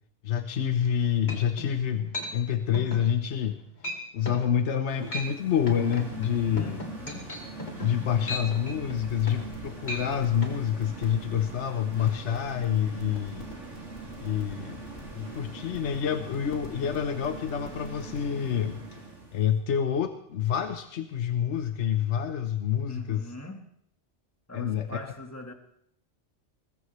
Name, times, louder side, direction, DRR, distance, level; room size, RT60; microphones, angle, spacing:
voice 1, 0.2-3.6 4.1-6.8 7.8-13.5 14.2-14.8 15.1-18.9 19.3-23.3 24.5-25.0, left 9 dB, 70° left, 8 dB, 1.1 m, -27 dB
sound 1, 0.8-0.9 1.3-1.7 2.1-2.3 2.7-3.1 3.4-3.6 3.8-4.0 4.3-4.5 4.9-5.3 5.7-9.6 9.8-10.1 10.4-10.6, left 1 dB, 40° left, 2.5 m, -36 dB
sound 2, 5.0-19.5, right 3 dB, 85° right, 3.7 m, -42 dB
voice 2, 6.5-7.3 22.8-23.6 24.5-25.5, left 1 dB, 15° left, 4 dB, 1.6 m, -42 dB
sound 3, 8.8-18.3, equal, 85° left, 3.7 m, -49 dB
22.5 x 20.0 x 3.2 m, 0.73 s
omnidirectional pair, 1.2 m